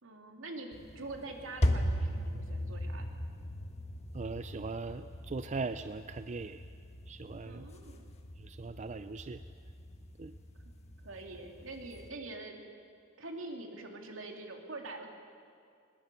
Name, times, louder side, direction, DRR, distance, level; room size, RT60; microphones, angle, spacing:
voice 1, 0.0-3.0 7.5-8.0 10.7-10.8 11.0-12.6 13.2-15.1, right 2 dB, 80° right, 2 dB, 2.7 m, -44 dB
sound 1, 0.7-12.1, equal, 35° left, 1.4 m, -38 dB
voice 2, 4.1-6.6 7.1-7.7 8.4-9.4 10.2-10.3, right 4 dB, 35° right, 11 dB, 0.4 m, -39 dB
21.5 x 20.5 x 6.9 m, 2.2 s
head